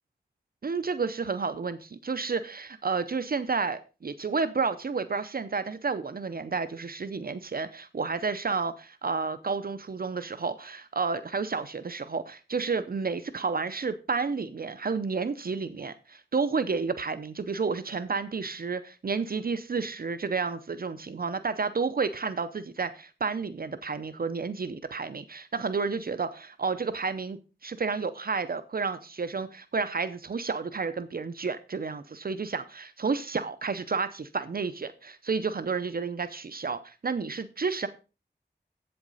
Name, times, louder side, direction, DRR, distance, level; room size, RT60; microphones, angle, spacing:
voice 1, 0.6-37.9, right 4 dB, 60° right, 0.6 m, -31 dB
8.4 x 7.7 x 4.0 m
wide cardioid pair, 65°, 17 cm